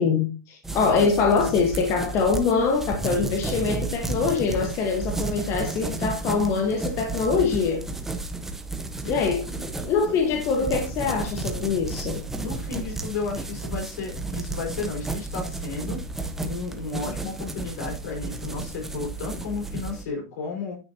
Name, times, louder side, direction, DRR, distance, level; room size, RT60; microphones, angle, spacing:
voice 1, 0.0-7.9 9.1-9.4 9.8-12.2, left 5 dB, 30° left, 3 dB, 1.2 m, -24 dB
sound 1, 0.6-20.0, right 3 dB, 5° right, 0.7 m, -32 dB
voice 2, 0.8-1.2 9.0-10.7 12.4-16.0 16.4-20.8, left 4 dB, 65° left, 1 dB, 4.8 m, -34 dB
9.8 x 8.8 x 2.8 m, 0.31 s
supercardioid pair, 170°, 10 cm